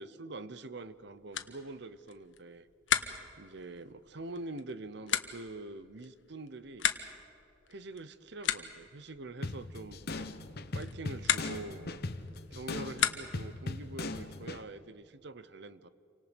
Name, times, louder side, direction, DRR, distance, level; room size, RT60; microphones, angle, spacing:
voice 1, 0.0-2.7 3.4-6.9 7.7-10.3 10.7-12.1 12.5-15.9, right 2 dB, 65° right, 15 dB, 0.9 m, -45 dB
sound 1, 0.8-13.6, left 8 dB, 90° left, 1.3 m, -38 dB
sound 2, 9.4-14.6, left 2 dB, 60° left, 1.1 m, -39 dB
29.0 x 25.0 x 5.3 m, 2.8 s
head